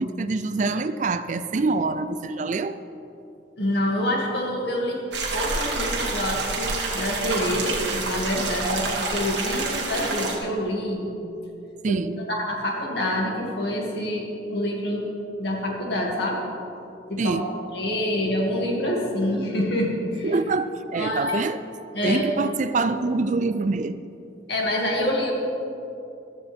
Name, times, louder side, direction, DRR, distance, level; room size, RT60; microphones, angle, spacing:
voice 1, 0.0-2.8 11.8-12.2 17.2-17.5 20.2-21.6 22.0-24.1, right 3 dB, 40° right, 12 dB, 0.4 m, -25 dB
voice 2, 3.6-5.0 5.3-11.1 11.9-12.0 12.3-15.1 15.4-16.4 17.1-17.3 17.7-20.3 20.9-21.4 21.9-22.3 24.5-25.3, left 1 dB, 65° left, -2 dB, 2.5 m, -26 dB
sound 1, 5.1-10.4, right 3 dB, 75° right, 2.0 m, -28 dB
15.0 x 12.5 x 3.6 m, 2.8 s
head